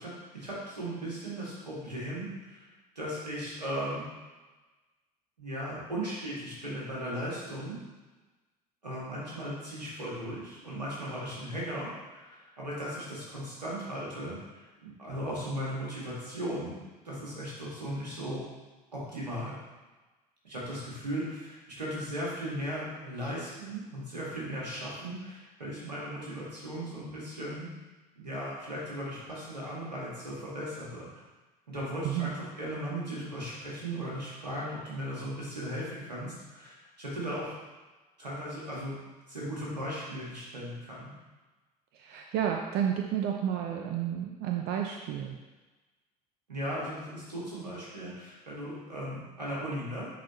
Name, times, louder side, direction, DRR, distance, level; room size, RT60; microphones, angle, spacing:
voice 1, 0.0-2.7 3.0-4.1 5.4-7.8 8.8-16.8 17.0-18.4 18.9-19.6 20.4-27.8 28.2-31.1 31.7-37.5 38.2-39.0 39.3-41.1 46.5-50.1, equal, 90° right, -6 dB, 2.1 m, -37 dB
voice 2, 41.9-45.4, right 9 dB, 55° right, 2 dB, 0.7 m, -31 dB
10.0 x 4.3 x 3.1 m, 1.2 s
figure-of-eight pair, 65°, 21 cm